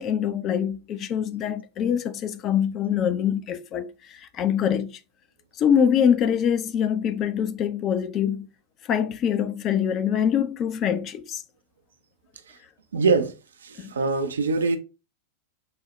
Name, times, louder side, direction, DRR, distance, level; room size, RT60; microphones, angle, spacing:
voice 1, 0.0-5.0 5.6-8.5 8.9-11.4 13.8-13.9, left 8 dB, 30° left, 0.3 m, -24 dB
voice 2, 12.9-13.3 13.9-14.8, right 4 dB, 70° right, 0.4 m, -22 dB
4.8 x 2.0 x 3.0 m
figure-of-eight pair, 90°, 0 cm